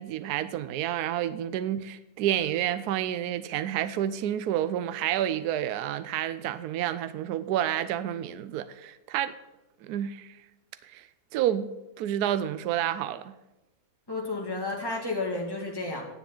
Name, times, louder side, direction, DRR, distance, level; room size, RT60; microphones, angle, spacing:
voice 1, 0.0-9.3 9.8-10.4 10.8-11.1 11.3-11.7 12.0-13.3, right 11 dB, 75° right, 1.1 m, -29 dB
voice 2, 14.1-16.0, left 3 dB, 15° left, 2.3 m, -31 dB
10.5 x 7.1 x 7.2 m
omnidirectional pair, 1.7 m